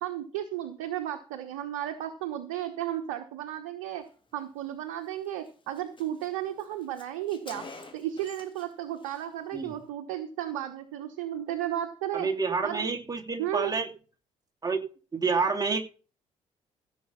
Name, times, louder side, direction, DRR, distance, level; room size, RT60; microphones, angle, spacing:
voice 1, 0.0-4.0 4.3-7.6 7.9-12.3 12.6-12.9 13.4-13.7, right 12 dB, 70° right, 1.2 m, -34 dB
Car, 5.0-5.2 5.5-5.6 5.8-8.7 9.0-9.2, left 3 dB, 30° left, 3.4 m, -48 dB
voice 2, 12.1-13.9 14.6-14.8 15.1-15.8, right 4 dB, 25° right, 2.7 m, -28 dB
16.0 x 7.1 x 5.6 m
figure-of-eight pair, 45°, 16 cm